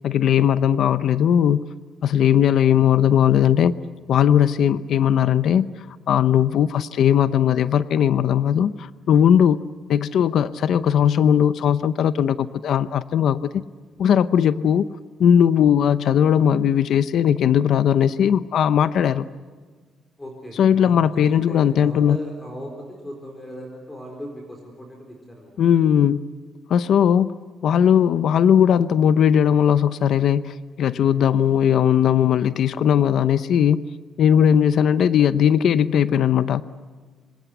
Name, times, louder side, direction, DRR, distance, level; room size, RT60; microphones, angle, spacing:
voice 1, 0.0-1.7 2.0-3.7 4.1-5.7 6.1-9.6 9.9-13.5 14.0-14.9 15.2-19.3 20.6-22.2 25.6-26.2 26.7-27.3 27.6-33.9 34.2-36.6, left 9 dB, 55° left, 13 dB, 0.7 m, -18 dB
voice 2, 20.2-25.6, equal, 10° left, 1 dB, 4.4 m, -37 dB
26.5 x 26.0 x 8.1 m, 1.5 s
cardioid pair, 175°, 0 cm